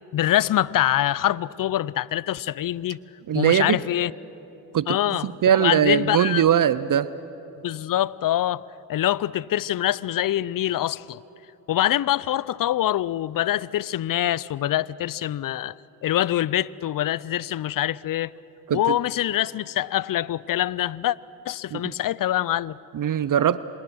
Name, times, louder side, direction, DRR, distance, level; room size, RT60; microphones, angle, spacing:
voice 1, 0.1-3.0 3.3-4.1 4.9-5.3 5.6-6.4 7.6-8.6 8.9-11.2 11.7-15.7 16.0-18.3 18.7-21.2 21.5-22.8, left 13 dB, 45° left, 0.6 m, -24 dB
voice 2, 3.3-3.8 4.7-7.1 18.7-19.0 21.7-21.9 22.9-23.6, right 9 dB, 45° right, 0.6 m, -21 dB
26.5 x 20.0 x 6.2 m
supercardioid pair, 50°, 46 cm